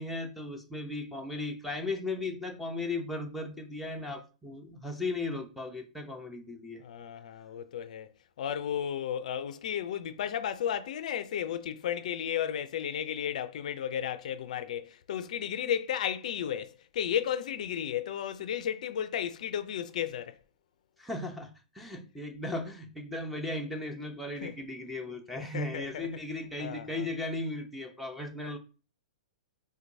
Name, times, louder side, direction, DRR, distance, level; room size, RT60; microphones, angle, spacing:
voice 1, 0.0-6.8 21.0-28.6, left 2 dB, ahead, 0.6 m, -36 dB
voice 2, 6.8-8.1 8.4-20.4 24.4-24.6 25.4-26.1 26.6-27.1, left 9 dB, 65° left, 0.4 m, -34 dB
4.4 x 2.2 x 2.6 m
hypercardioid pair, 135°, 4 cm